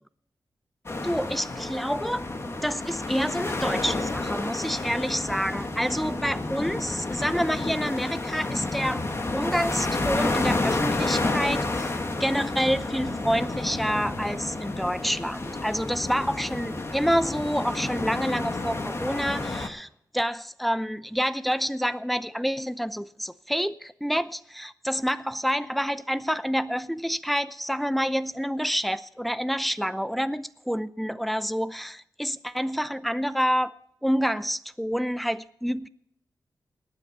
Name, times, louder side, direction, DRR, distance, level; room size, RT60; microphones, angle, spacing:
sound 1, 0.9-19.7, left 2 dB, 35° left, 1.5 m, -30 dB
voice 1, 1.0-9.1 9.3-33.7 34.0-35.9, equal, ahead, 0.6 m, -28 dB
18.0 x 9.7 x 4.2 m
cardioid pair, 75°, 7 cm